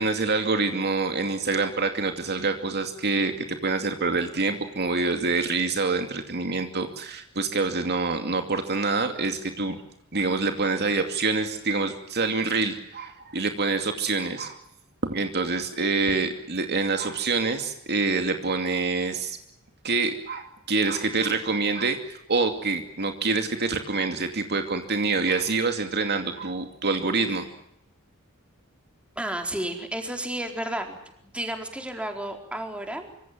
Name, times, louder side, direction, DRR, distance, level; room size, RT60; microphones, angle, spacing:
voice 1, 0.0-9.8 10.1-14.6 15.1-19.4 19.8-27.5, right 3 dB, 50° right, 6 dB, 2.5 m, -26 dB
voice 2, 29.2-31.0 31.2-33.2, right 1 dB, 5° right, 4 dB, 4.3 m, -32 dB
25.5 x 25.5 x 7.5 m, 0.77 s
head